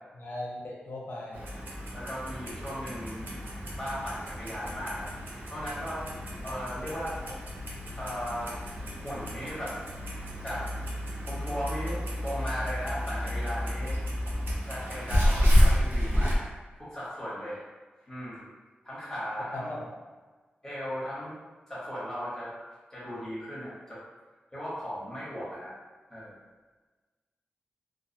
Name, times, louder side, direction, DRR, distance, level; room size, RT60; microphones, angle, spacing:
voice 1, 0.1-1.5 19.5-19.8, left 1 dB, 65° left, -3 dB, 0.6 m, -38 dB
Clock, 1.3-16.4, equal, 75° right, 0.5 m, -30 dB
voice 2, 1.9-3.4 3.7-5.1 5.5-6.0 6.4-7.2 8.0-8.6 9.0-9.8 10.4-10.7 11.2-14.0 14.6-16.5 16.8-17.6 18.1-18.5 18.8-19.8 20.6-21.3 21.7-22.5 22.9-24.0 24.5-25.8 26.1-26.4, equal, 15° left, -9 dB, 0.9 m, -37 dB
2.3 x 2.3 x 2.7 m, 1.3 s
wide cardioid pair, 140°, 4 cm